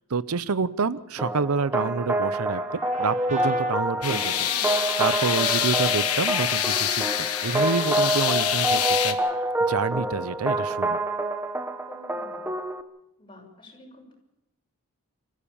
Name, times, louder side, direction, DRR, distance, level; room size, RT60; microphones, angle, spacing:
voice 1, 0.1-4.5 5.0-9.2 9.7-11.0, right 4 dB, 80° right, 17 dB, 0.7 m, -28 dB
sound 1, 1.2-12.8, right 1 dB, 10° right, 1.0 m, -27 dB
Trumpet, 2.5-9.1, right 3 dB, 35° right, 4.4 m, -42 dB
sound 2, 4.0-9.1, left 11 dB, 85° left, 1.5 m, -26 dB
voice 2, 11.9-12.5 13.2-14.2, equal, 20° left, 0 dB, 6.5 m, -48 dB
28.0 x 15.0 x 7.2 m, 0.93 s
head